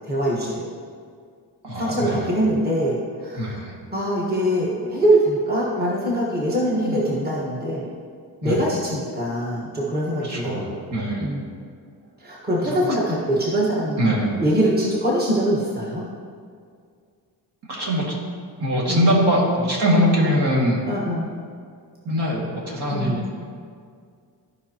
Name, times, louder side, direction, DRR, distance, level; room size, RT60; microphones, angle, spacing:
voice 1, 0.0-0.7 1.8-3.6 3.9-7.9 8.4-10.8 11.2-11.4 12.2-16.1 18.9-19.2 20.1-20.3 20.8-21.3 22.9-23.2, right 1 dB, 20° right, -5 dB, 1.4 m, -23 dB
voice 2, 1.6-2.4 3.4-3.8 6.8-7.0 8.4-8.7 10.2-11.3 12.6-13.0 14.0-14.3 17.7-18.2 18.6-20.8 22.1-23.2, equal, 70° right, -3 dB, 2.2 m, -22 dB
14.0 x 5.4 x 2.9 m, 2.2 s
cardioid pair, 110°, 42 cm